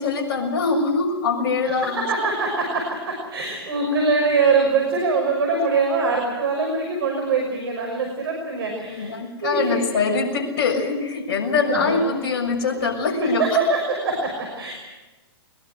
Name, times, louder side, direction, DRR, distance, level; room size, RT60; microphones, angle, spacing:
voice 1, 0.0-2.1 8.9-13.6, left 4 dB, 55° left, 2 dB, 6.5 m, -23 dB
voice 2, 1.7-9.1 9.4-10.0 11.4-12.0 13.2-14.7, right 4 dB, 65° right, 2 dB, 6.0 m, -23 dB
22.0 x 22.0 x 7.9 m, 1.1 s
hypercardioid pair, 115°, 13 cm